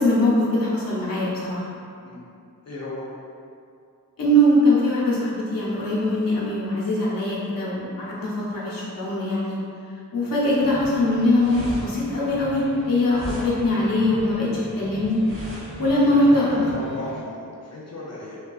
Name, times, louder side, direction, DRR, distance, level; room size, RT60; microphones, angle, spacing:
voice 1, 0.0-1.7 4.2-9.6 10.1-15.2 15.8-16.7, left 1 dB, 80° left, -6 dB, 0.8 m, -21 dB
voice 2, 2.7-3.1 16.0-18.4, left 2 dB, 50° left, -5 dB, 0.4 m, -35 dB
sound 1, 10.4-17.2, right 1 dB, 20° right, 1.1 m, -40 dB
sound 2, 11.1-16.3, equal, 75° right, 1.4 m, -39 dB
3.3 x 2.2 x 2.3 m, 2.5 s
wide cardioid pair, 130°, 34 cm